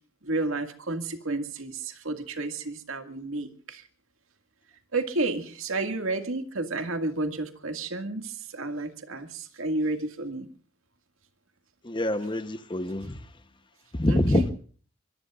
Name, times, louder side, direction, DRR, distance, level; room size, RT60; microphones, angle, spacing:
voice 1, 0.2-3.8 4.9-10.5 14.1-14.5, right 2 dB, 80° right, 2.1 m, -31 dB
voice 2, 11.8-13.2 13.9-14.5, left 1 dB, 25° left, 0.9 m, -25 dB
24.5 x 22.5 x 2.5 m
head